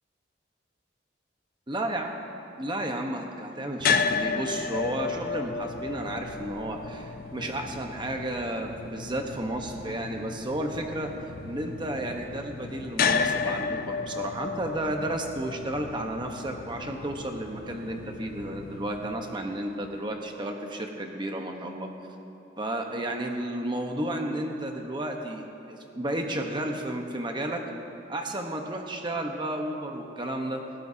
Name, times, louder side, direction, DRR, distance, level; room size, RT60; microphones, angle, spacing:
voice 1, 1.7-2.1 2.6-11.1 11.4-21.9 22.6-27.6 28.1-30.6, right 1 dB, 25° right, 3 dB, 1.1 m, -32 dB
sound 1, 3.8-20.0, left 5 dB, 50° left, 0.4 m, -33 dB
19.5 x 17.0 x 2.8 m, 2.9 s
head